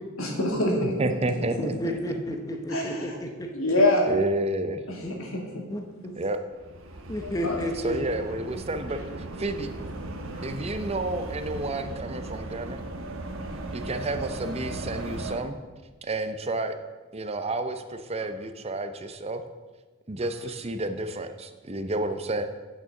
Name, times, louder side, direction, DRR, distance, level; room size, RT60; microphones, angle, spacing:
voice 1, 0.2-0.9 2.7-3.2 3.5-4.1 4.9-5.6 7.2-7.6 10.3-10.5, left 1 dB, 75° left, 0 dB, 2.3 m, -25 dB
voice 2, 0.8-2.0 4.1-4.8 6.1-6.4 7.7-9.0 9.4-9.7 10.4-12.8 13.7-15.6 16.0-16.8 17.1-19.4 20.1-22.4, right 2 dB, 30° right, 8 dB, 0.6 m, -30 dB
voice 3, 1.6-3.5 5.0-5.1 5.7-6.1 7.1-8.0, equal, 15° left, 3 dB, 0.8 m, -32 dB
sound 1, 6.5-15.4, right 2 dB, 70° right, 1.2 m, -37 dB
9.2 x 6.4 x 7.0 m, 1.3 s
head